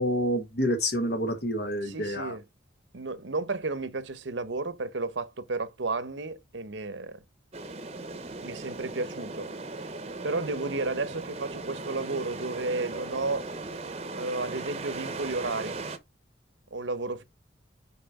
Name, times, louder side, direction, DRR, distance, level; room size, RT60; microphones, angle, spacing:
voice 1, 0.0-2.3, equal, 55° left, 1.4 m, -28 dB
voice 2, 1.8-2.4 2.9-7.2 8.4-9.5 10.2-13.5 14.1-15.8 16.7-17.2, right 3 dB, 75° right, 0.9 m, -32 dB
sound 1, 7.5-16.0, right 3 dB, 35° right, 0.8 m, -38 dB
5.7 x 4.7 x 4.8 m
head